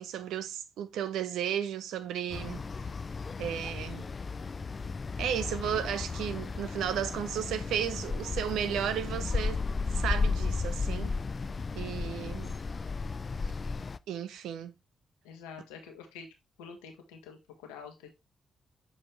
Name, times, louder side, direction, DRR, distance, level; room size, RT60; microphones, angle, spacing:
voice 1, 0.0-2.6 3.4-4.1 5.2-9.6 9.9-11.1 11.7-12.5 14.1-14.7, right 9 dB, 75° right, 0.7 m, -34 dB
sound 1, 2.3-14.0, left 4 dB, 45° left, 0.4 m, -34 dB
voice 2, 15.2-16.3 16.6-18.1, left 6 dB, 85° left, 1.3 m, -47 dB
7.5 x 4.2 x 3.2 m
hypercardioid pair, 45°, 0 cm